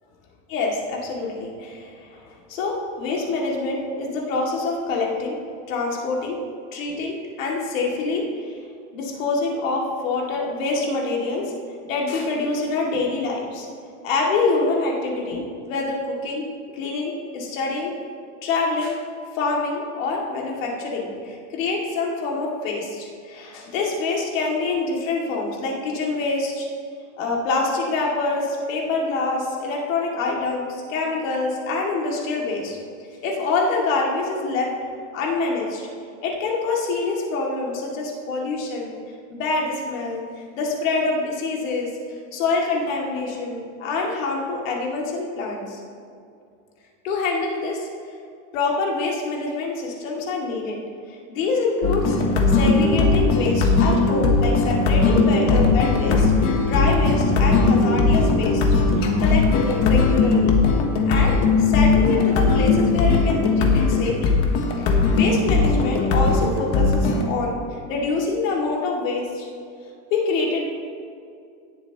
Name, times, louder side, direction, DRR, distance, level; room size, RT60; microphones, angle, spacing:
voice 1, 0.5-5.4 5.7-6.4 6.7-8.5 8.9-11.5 11.8-13.7 14.0-16.4 16.7-18.0 18.4-19.0 19.3-26.7 27.2-32.8 33.2-34.7 35.1-35.9 36.2-38.9 39.3-40.2 40.5-41.9 42.3-45.8 47.0-47.9 48.5-50.8 51.3-52.2 52.5-58.7 58.9-60.6 61.1-64.4 64.8-69.5 70.1-70.6, left 3 dB, 90° left, -2 dB, 2.5 m, -26 dB
sound 1, 51.8-67.2, left 3 dB, 40° left, 1.1 m, -19 dB
sound 2, 52.9-63.5, left 9 dB, 55° left, 0.5 m, -32 dB
17.5 x 7.7 x 3.0 m, 2.4 s
supercardioid pair, 170°, 38 cm